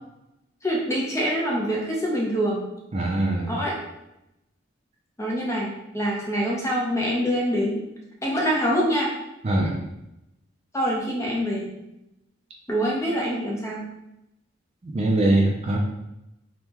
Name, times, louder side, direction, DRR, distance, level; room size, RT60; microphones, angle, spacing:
voice 1, 0.6-2.7 3.5-3.8 5.2-7.8 8.2-9.1 10.7-11.7 12.7-13.8, equal, 15° left, -3 dB, 0.6 m, -25 dB
voice 2, 2.9-3.5 9.4-9.8 14.8-15.8, right 1 dB, 35° right, -1 dB, 0.4 m, -22 dB
3.4 x 2.2 x 2.9 m, 0.87 s
head